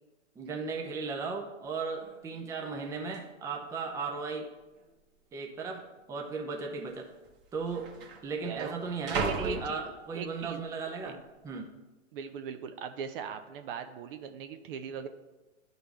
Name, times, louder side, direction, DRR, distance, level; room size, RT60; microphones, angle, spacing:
voice 1, 0.4-4.5 5.3-7.1 7.5-7.9 8.2-11.2 11.4-11.7, right 4 dB, 10° right, 1 dB, 0.6 m, -36 dB
sound 1, 1.7-1.8 2.0-2.4 3.1-3.2 4.0-4.5 4.8-4.9 5.7-5.9 6.9-7.0 7.2-10.5 10.9-11.4, right 4 dB, 30° right, 1.3 m, -38 dB
voice 2, 8.5-8.8 9.1-9.8 10.1-10.7 11.0-11.1 12.1-15.1, right 7 dB, 45° right, 9 dB, 0.6 m, -39 dB
11.0 x 4.0 x 3.5 m, 1.1 s
hypercardioid pair, 110°, 38 cm